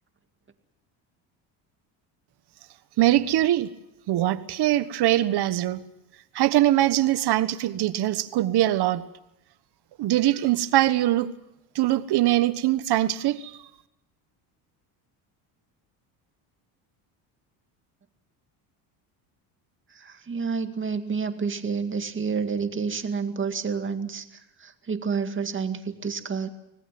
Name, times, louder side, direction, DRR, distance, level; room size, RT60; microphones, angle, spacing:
voice 1, 3.0-3.7 4.1-5.8 6.3-9.0 10.0-11.3 11.7-13.6, right 14 dB, 55° right, 13 dB, 1.4 m, -22 dB
voice 2, 19.9-26.5, right 5 dB, 25° right, 7 dB, 2.1 m, -29 dB
25.5 x 18.0 x 7.7 m, 0.88 s
supercardioid pair, 100°, 46 cm